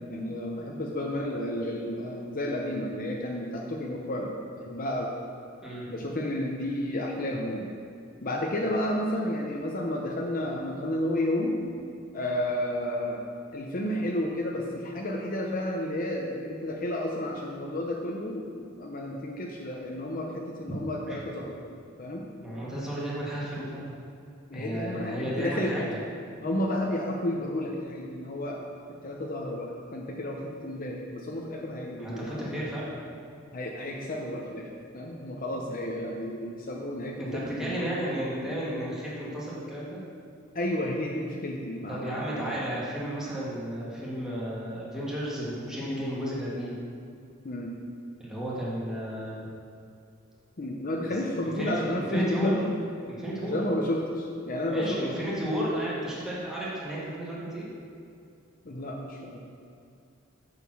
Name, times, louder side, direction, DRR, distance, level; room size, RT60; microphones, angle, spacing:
voice 1, 0.1-4.3 4.6-5.1 5.9-7.7 8.2-11.6 12.1-13.3 13.5-21.6 22.0-22.2 24.5-25.7 26.4-28.6 29.0-32.7 33.5-34.7 34.9-38.0 40.5-42.6 47.4-47.7 50.6-52.6 53.4-55.0 58.6-59.4, left 1 dB, 45° left, -1 dB, 0.8 m, -31 dB
voice 2, 22.4-23.9 24.5-26.0 32.0-32.9 37.2-40.0 41.9-46.7 48.2-49.5 51.4-52.5 53.1-53.5 54.7-57.7, right 1 dB, 5° right, -8 dB, 1.9 m, -33 dB
6.9 x 6.8 x 6.1 m, 2.5 s
head